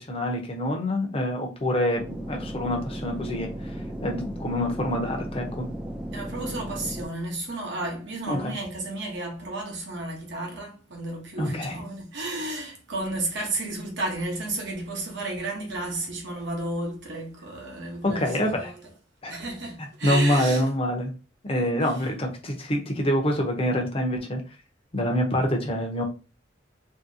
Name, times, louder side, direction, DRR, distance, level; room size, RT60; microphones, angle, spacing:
voice 1, 0.0-3.5 4.0-5.7 8.3-8.6 11.4-11.8 18.0-18.7 19.2-19.3 20.0-21.1 21.4-24.4 24.9-26.0, left 1 dB, 30° left, 0.7 m, -26 dB
sound 1, 2.0-7.0, equal, 5° right, 0.4 m, -35 dB
voice 2, 6.1-18.8 19.3-20.6 21.5-21.7, right 2 dB, 65° right, 1.0 m, -32 dB
2.9 x 2.7 x 2.7 m
head